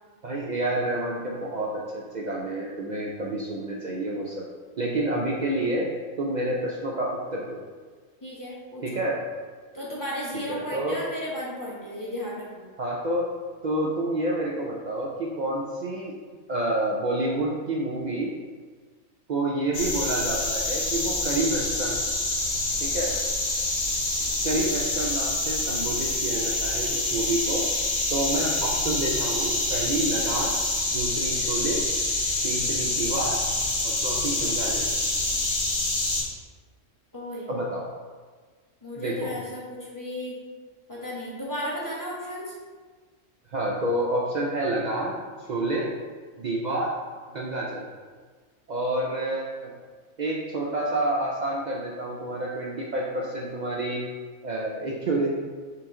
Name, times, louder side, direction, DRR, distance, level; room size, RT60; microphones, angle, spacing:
voice 1, 0.2-4.4 4.8-5.9 6.2-7.6 8.8-9.2 10.5-11.0 12.8-13.2 13.6-16.1 16.5-18.3 19.3-22.0 22.8-23.1 24.4-27.6 28.1-30.6 30.9-31.8 32.4-33.4 33.8-34.9 37.5-37.9 39.0-39.3 43.5-45.2 45.5-45.9 46.4-46.9 47.3-47.9 48.7-49.7 50.2-54.0 54.4-55.3, right 1 dB, 75° right, -4 dB, 0.4 m, -28 dB
voice 2, 8.2-9.0 9.7-12.7 37.1-37.5 38.8-40.3 40.9-42.5, left 1 dB, 15° left, -6 dB, 0.9 m, -34 dB
sound 1, 19.7-36.2, left 2 dB, 45° left, 0.9 m, -26 dB
4.7 x 3.1 x 3.7 m, 1.5 s
omnidirectional pair, 1.4 m